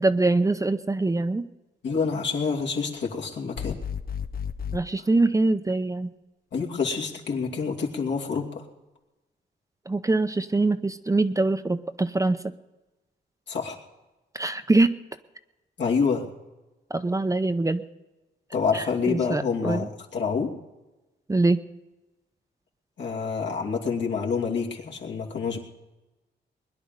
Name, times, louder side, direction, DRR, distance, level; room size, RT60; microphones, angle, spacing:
voice 1, 0.0-1.5 4.7-6.1 9.9-12.4 14.3-15.0 16.9-17.8 18.7-19.9 21.3-21.6, right 2 dB, 15° right, 10 dB, 0.7 m, -23 dB
voice 2, 1.8-3.8 6.5-8.6 13.5-13.8 15.8-16.3 18.5-20.5 23.0-25.6, left 5 dB, 75° left, -1 dB, 2.7 m, -27 dB
sound 1, 3.6-4.8, left 7 dB, 55° left, 0.7 m, -32 dB
21.0 x 11.0 x 5.2 m, 1.1 s
cardioid pair, 105°, 19 cm